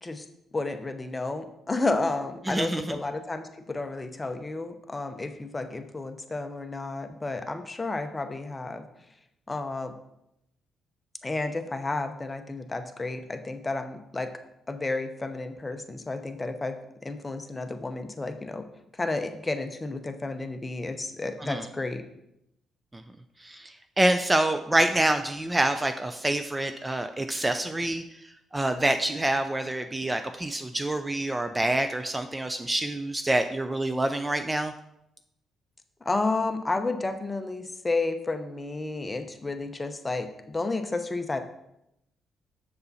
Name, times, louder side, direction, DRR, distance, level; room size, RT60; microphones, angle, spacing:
voice 1, 0.5-8.8 9.5-9.9 11.2-14.3 14.7-16.8 17.0-18.7 18.9-22.0 36.0-41.4, left 3 dB, 20° left, 7 dB, 0.8 m, -31 dB
voice 2, 2.5-2.8 21.4-21.7 22.9-23.0 23.4-28.0 28.5-34.7, right 1 dB, 15° right, 8 dB, 0.4 m, -26 dB
6.8 x 6.8 x 4.1 m, 0.83 s
cardioid pair, 90°, 0 cm